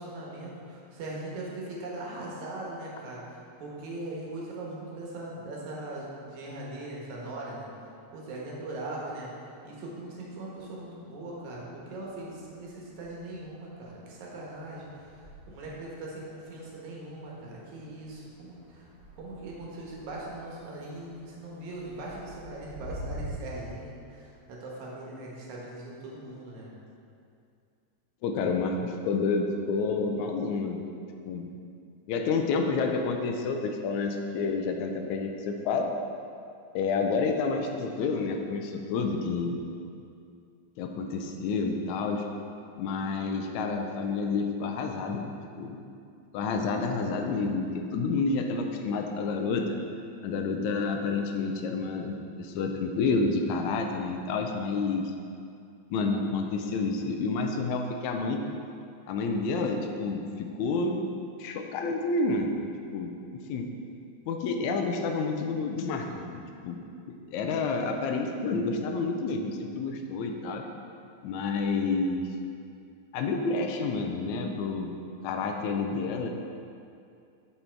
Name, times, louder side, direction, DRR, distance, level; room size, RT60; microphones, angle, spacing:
voice 1, 0.0-7.7 8.1-18.9 19.2-26.7, right 2 dB, 80° right, -4 dB, 2.6 m, -40 dB
sound 1, 10.3-11.3 11.6-23.3, equal, 40° right, 1.9 m, -48 dB
voice 2, 28.2-30.8 31.3-31.5 32.1-35.9 36.8-39.6 40.8-42.2 42.8-45.2 45.6-45.8 46.3-49.8 50.2-55.1 55.9-58.4 59.1-60.2 60.6-61.0 61.4-62.6 62.9-63.7 64.3-66.8 67.1-70.7 71.2-72.2 73.1-74.9 75.2-76.3, left 4 dB, 80° left, 4 dB, 1.9 m, -29 dB
6.7 x 5.5 x 4.5 m, 2.5 s
omnidirectional pair, 3.3 m